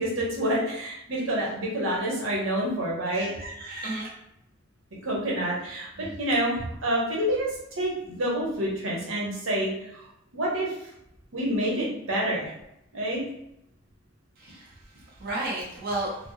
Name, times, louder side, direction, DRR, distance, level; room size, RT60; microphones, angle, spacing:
voice 1, 0.0-3.3 4.9-10.1 10.3-10.7 11.3-12.5 12.9-13.2, right 1 dB, 90° right, -4 dB, 1.0 m, -28 dB
voice 2, 3.1-4.1 6.0-6.1 14.4-14.7 15.2-16.1, right 2 dB, 50° right, -5 dB, 0.9 m, -33 dB
4.2 x 2.0 x 3.1 m, 0.80 s
head